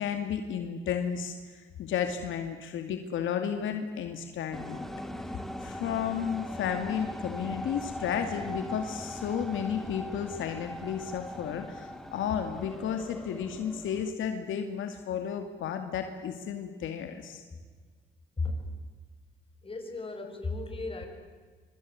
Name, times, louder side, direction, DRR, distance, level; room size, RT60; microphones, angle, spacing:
voice 1, 0.0-4.9 5.6-17.4, left 8 dB, 80° left, 6 dB, 2.4 m, -33 dB
sound 1, 4.5-14.1, equal, ahead, 2.3 m, -40 dB
voice 2, 18.4-18.7 19.6-21.1, left 3 dB, 25° left, 5 dB, 6.2 m, -35 dB
24.5 x 24.0 x 9.6 m, 1.5 s
cardioid pair, 90°, 20 cm